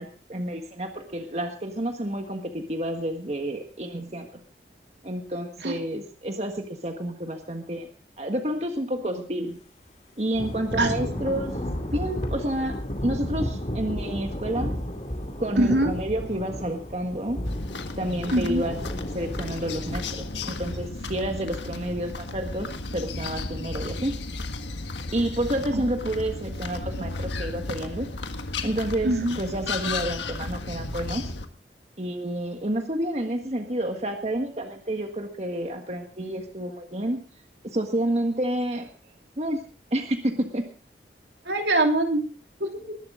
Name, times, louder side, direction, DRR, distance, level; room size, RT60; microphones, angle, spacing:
voice 1, 0.0-4.3 5.0-7.9 8.2-9.6 10.2-11.6 11.9-14.7 15.4-17.4 18.0-18.8 19.1-24.1 25.1-28.1 28.6-31.2 32.0-37.2 37.7-38.9 39.4-39.6 39.9-40.6, right 1 dB, 40° right, 5 dB, 1.5 m, -29 dB
Thunder / Rain, 10.3-20.9, equal, 40° left, 2.3 m, -33 dB
voice 2, 15.6-15.9 18.3-18.6 25.7-25.8 29.0-29.4 41.5-42.3 42.6-43.0, right 1 dB, 80° right, 3 dB, 2.8 m, -23 dB
sound 1, 17.4-31.5, left 3 dB, 90° left, 1.6 m, -34 dB
20.5 x 11.5 x 3.7 m, 0.38 s
head